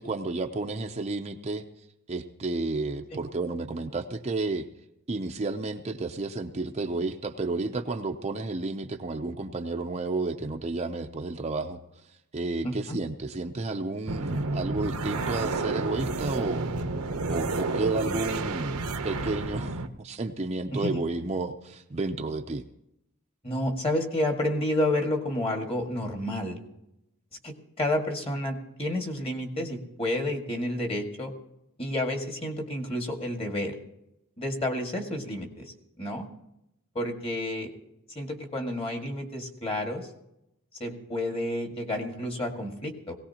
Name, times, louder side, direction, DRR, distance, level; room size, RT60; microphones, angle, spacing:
voice 1, 0.0-1.6 2.1-4.6 5.1-11.8 12.3-16.7 17.3-22.6, right 3 dB, 30° right, 4 dB, 0.6 m, -31 dB
voice 2, 12.6-13.0 18.1-18.2 20.7-21.0 23.4-26.6 27.4-31.3 31.8-33.8 34.4-36.3 37.0-37.7 38.2-40.1 40.8-43.2, left 1 dB, 25° left, 3 dB, 1.8 m, -30 dB
sound 1, 14.1-19.9, right 3 dB, 85° right, 0.9 m, -30 dB
19.0 x 17.5 x 2.9 m, 0.84 s
head